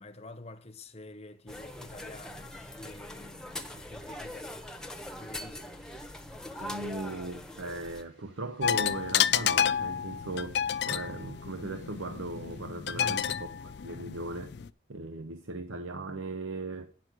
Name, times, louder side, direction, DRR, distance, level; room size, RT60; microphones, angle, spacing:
voice 1, 0.0-4.5 5.2-5.8 13.0-13.4, left 2 dB, 30° left, 0.8 m, -48 dB
sound 1, 1.5-8.0, left 1 dB, 5° left, 0.8 m, -42 dB
sound 2, 3.9-12.6, right 1 dB, 65° right, 4.9 m, -63 dB
voice 2, 6.6-13.5 13.8-14.6 14.9-16.9, right 2 dB, 90° right, 0.8 m, -38 dB
sound 3, 8.6-14.7, left 9 dB, 55° left, 0.4 m, -30 dB
9.5 x 6.1 x 5.9 m
head